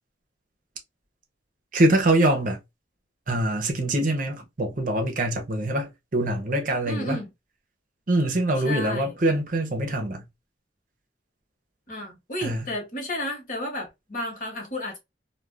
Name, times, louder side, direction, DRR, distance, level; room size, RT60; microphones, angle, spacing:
voice 1, 1.7-2.6 3.3-7.2 8.1-10.2 12.4-12.7, right 1 dB, 45° right, 0.6 m, -24 dB
voice 2, 6.9-7.3 8.6-9.1 11.9-15.0, left 1 dB, 45° left, 1.2 m, -32 dB
2.3 x 2.2 x 3.3 m
head